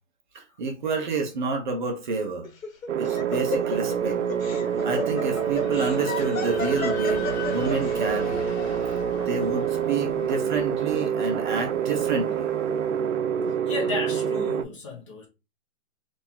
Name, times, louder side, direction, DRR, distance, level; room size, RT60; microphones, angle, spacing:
voice 1, 0.3-2.5 3.0-4.2 4.8-8.5 9.3-12.5, right 4 dB, 35° right, 0.8 m, -29 dB
Laughter, 2.4-7.9, left 3 dB, 85° left, 1.1 m, -33 dB
sound 1, 2.9-14.6, right 8 dB, 75° right, 0.6 m, -27 dB
sound 2, 3.2-13.0, left 4 dB, 55° left, 1.5 m, -41 dB
voice 2, 13.6-15.3, left 3 dB, 25° left, 0.8 m, -33 dB
2.9 x 2.7 x 3.8 m
hypercardioid pair, 155°, 39 cm